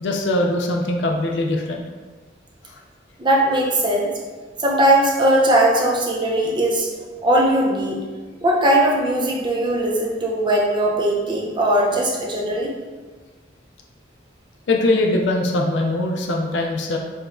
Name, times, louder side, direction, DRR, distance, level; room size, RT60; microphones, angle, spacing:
voice 1, 0.0-1.8 14.7-17.0, left 2 dB, 70° left, 1 dB, 0.4 m, -21 dB
voice 2, 3.2-4.1 4.6-6.9 7.2-8.0 8.4-12.7, right 1 dB, 25° right, -3 dB, 0.5 m, -19 dB
4.8 x 2.2 x 2.5 m, 1.4 s
head